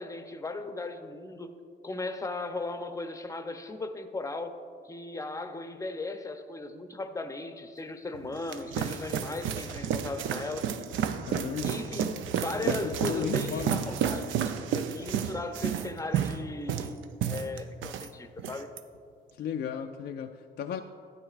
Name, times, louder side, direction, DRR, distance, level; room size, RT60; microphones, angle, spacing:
voice 1, 0.0-1.5 1.8-10.7 11.6-12.1 12.4-18.7, left 3 dB, 15° left, 8 dB, 0.6 m, -37 dB
sound 1, 8.1-18.1 18.4-18.8, right 8 dB, 75° right, 0.5 m, -31 dB
voice 2, 11.3-11.7 12.6-13.8 19.4-20.8, left 8 dB, 55° left, 6 dB, 0.4 m, -35 dB
12.5 x 9.3 x 2.4 m, 2.4 s
cardioid pair, 90°, 20 cm